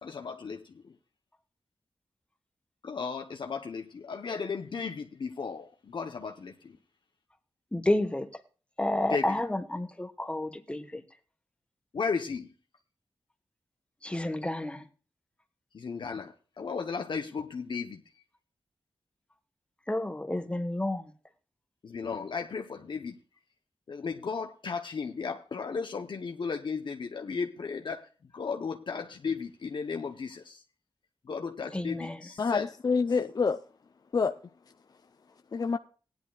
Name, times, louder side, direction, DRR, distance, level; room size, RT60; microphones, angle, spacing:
voice 1, 0.0-0.9 2.8-6.8 9.1-9.4 11.9-12.5 15.7-18.0 21.8-23.2 23.9-30.6 31.2-32.7, left 5 dB, 60° left, 0.9 m, -35 dB
voice 2, 7.7-8.4 8.8-11.0 14.0-14.9 19.9-21.1 31.7-32.3, left 1 dB, 10° left, 1.2 m, -30 dB
voice 3, 32.4-33.6 34.1-34.3 35.5-35.8, left 5 dB, 45° left, 0.5 m, -27 dB
18.5 x 10.5 x 2.3 m
wide cardioid pair, 130°, 9 cm